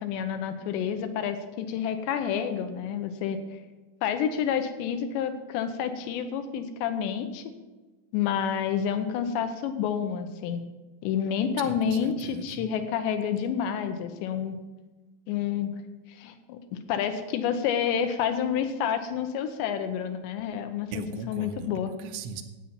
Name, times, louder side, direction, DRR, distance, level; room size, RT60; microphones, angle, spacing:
voice 1, 0.0-3.6 4.0-7.5 8.1-10.6 11.0-14.6 15.3-15.7 16.1-20.9 21.3-21.9, left 8 dB, 80° left, 8 dB, 2.8 m, -29 dB
voice 2, 11.6-12.7 20.9-22.4, right 5 dB, 80° right, 7 dB, 3.2 m, -39 dB
13.0 x 9.0 x 5.6 m, 1.2 s
omnidirectional pair, 5.8 m